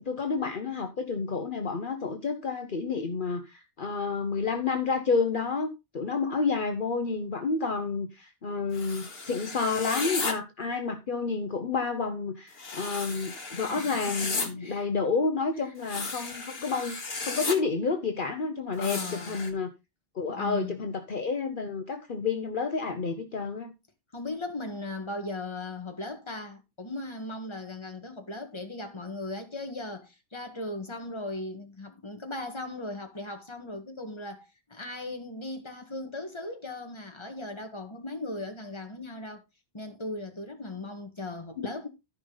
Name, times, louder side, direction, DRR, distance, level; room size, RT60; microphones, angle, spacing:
voice 1, 0.0-19.7 20.1-23.7 41.6-41.7, left 4 dB, 55° left, 1.1 m, -30 dB
sound 1, 8.7-10.3 12.6-14.5 15.8-17.5 18.8-19.5, left 3 dB, 70° left, 2.0 m, -34 dB
voice 2, 13.7-14.9 18.8-19.4 20.3-20.8 24.1-39.4 39.7-41.9, left 2 dB, 30° left, 1.8 m, -38 dB
14.0 x 5.3 x 4.0 m
omnidirectional pair, 1.0 m